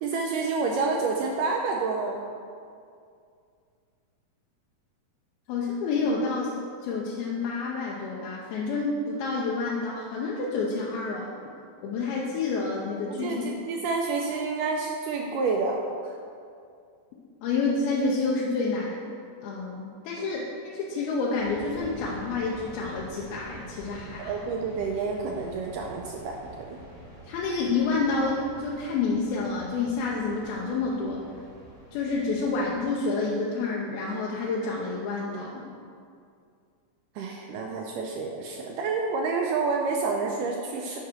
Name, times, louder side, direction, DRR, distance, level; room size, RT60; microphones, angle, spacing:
voice 1, 0.0-2.2 13.1-16.2 24.2-26.8 37.2-41.0, right 4 dB, 85° right, 1 dB, 1.9 m, -29 dB
voice 2, 5.5-6.5 6.8-11.3 11.8-13.5 17.4-19.0 19.4-24.3 27.3-31.2 31.9-35.7, left 3 dB, 85° left, -4 dB, 2.7 m, -29 dB
sound 1, 21.4-32.9, right 2 dB, 45° right, 1.0 m, -47 dB
8.3 x 4.9 x 6.0 m, 2.3 s
omnidirectional pair, 4.3 m